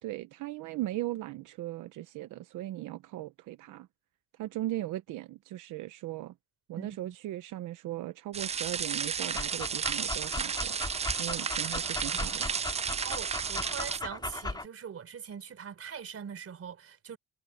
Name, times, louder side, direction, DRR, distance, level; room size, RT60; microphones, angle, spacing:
voice 1, 0.0-3.9 4.4-6.3 6.7-10.8 11.2-12.5, right 15 dB, 90° right, 1.0 m, -38 dB
voice 2, 6.8-7.2 11.4-11.7 12.1-12.4 13.0-17.2, right 7 dB, 50° right, 3.8 m, -42 dB
sound 1, 8.3-14.0, right 6 dB, 20° right, 0.3 m, -33 dB
Dog, 9.2-14.7, left 2 dB, 15° left, 2.3 m, -38 dB
cardioid pair, 90°, 30 cm